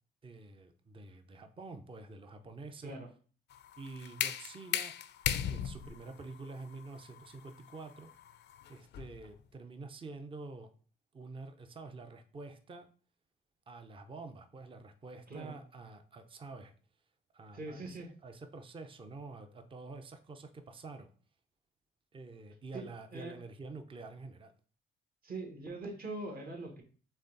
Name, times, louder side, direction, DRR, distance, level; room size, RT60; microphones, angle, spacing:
voice 1, 0.2-3.0 3.8-4.9 5.3-8.1 8.7-10.7 11.1-12.9 13.7-16.7 17.3-21.1 22.1-24.5, right 3 dB, 25° right, 7 dB, 0.6 m, -48 dB
sound 1, 3.5-9.3, left 10 dB, 60° left, 0.4 m, -38 dB
voice 2, 17.5-18.1 22.7-22.9 23.1-23.4 25.2-26.8, right 2 dB, 50° right, 2 dB, 1.4 m, -42 dB
4.2 x 3.3 x 3.8 m, 0.41 s
cardioid pair, 90°, 20 cm